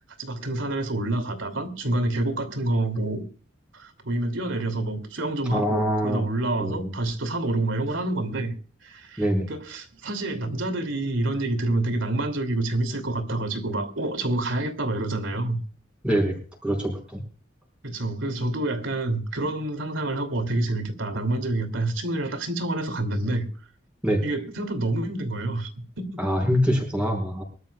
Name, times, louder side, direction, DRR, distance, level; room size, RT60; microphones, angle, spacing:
voice 1, 0.2-3.2 3.7-8.5 8.8-15.6 17.8-23.5 24.2-25.7 26.0-26.1, right 2 dB, 80° right, 2.7 m, -27 dB
voice 2, 5.5-6.2 6.6-6.9 9.2-9.5 16.0-16.4 16.6-17.2 24.0-24.2 26.2-27.4, equal, 5° right, 5.2 m, -24 dB
24.0 x 12.5 x 2.3 m
head